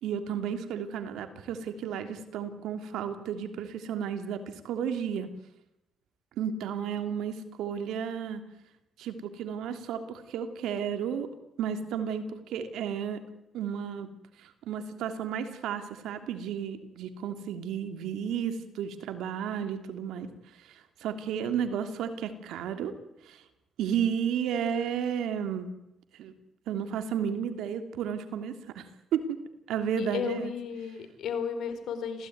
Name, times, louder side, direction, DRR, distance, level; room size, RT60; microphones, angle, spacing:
voice 1, 0.0-5.3 6.4-8.4 9.0-11.3 11.6-13.2 13.5-14.1 14.4-20.3 21.0-22.9 23.2-23.4 23.8-25.7 26.2-26.3 26.7-28.9 29.1-29.4 29.7-30.5, right 8 dB, 85° right, 8 dB, 3.0 m, -32 dB
voice 2, 30.0-32.3, left 6 dB, 75° left, 9 dB, 4.5 m, -34 dB
27.0 x 17.0 x 9.6 m, 0.89 s
cardioid pair, 90°, 0 cm